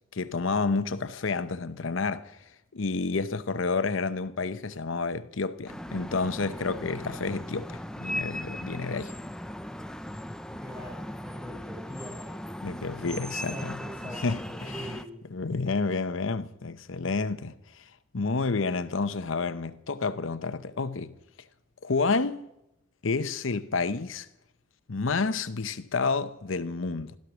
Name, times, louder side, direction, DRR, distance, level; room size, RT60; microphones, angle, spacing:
voice 1, 0.1-2.4 2.7-9.1 12.6-13.7 14.2-14.9 15.3-17.5 18.1-21.1 21.8-22.4 23.0-24.3 24.9-27.2, left 4 dB, 75° left, 0.8 m, -30 dB
sound 1, 5.7-15.0, equal, 5° left, 0.6 m, -38 dB
voice 2, 10.6-12.5 13.0-15.3, equal, 10° right, 5.4 m, -43 dB
15.0 x 13.0 x 6.1 m
head